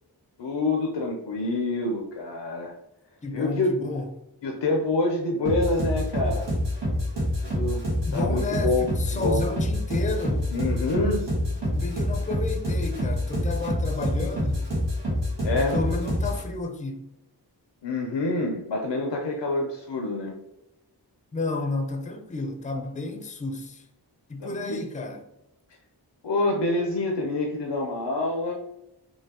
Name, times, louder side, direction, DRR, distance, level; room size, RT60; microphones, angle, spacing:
voice 1, 0.4-2.7 3.3-3.7 4.4-6.5 7.4-7.8 8.1-9.5 10.5-11.3 13.4-13.5 15.4-15.8 17.8-20.4 24.4-24.8 26.2-28.6, left 2 dB, 90° left, 0.7 m, -27 dB
voice 2, 3.2-4.1 8.0-10.5 11.7-14.7 15.5-17.1 21.3-23.8 24.3-25.3, left 3 dB, 20° left, 0.5 m, -31 dB
sound 1, 5.4-16.4, equal, 85° right, 1.5 m, -27 dB
5.5 x 2.7 x 2.9 m
wide cardioid pair, 80°, 41 cm